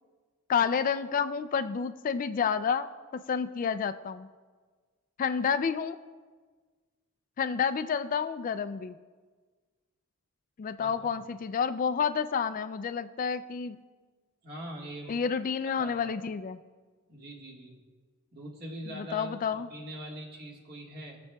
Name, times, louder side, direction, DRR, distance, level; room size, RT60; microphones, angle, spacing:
voice 1, 0.5-2.9 3.1-4.3 5.2-6.0 7.4-9.0 10.6-13.8 15.1-16.6 19.0-19.7, left 6 dB, 40° left, 11 dB, 0.3 m, -29 dB
voice 2, 14.4-15.3 15.8-16.0 17.1-17.8 18.3-21.2, right 1 dB, 45° right, -1 dB, 1.6 m, -42 dB
20.5 x 6.9 x 2.3 m, 1.4 s
head